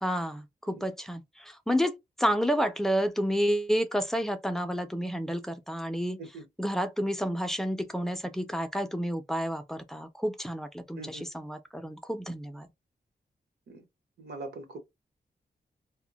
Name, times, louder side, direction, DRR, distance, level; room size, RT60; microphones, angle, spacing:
voice 1, 0.0-6.2 6.6-12.7, equal, 5° left, 0.4 m, -30 dB
voice 2, 11.0-11.3 13.7-13.8 14.2-14.8, right 3 dB, 90° right, 0.8 m, -42 dB
2.1 x 2.1 x 3.8 m
wide cardioid pair, 95°, 16 cm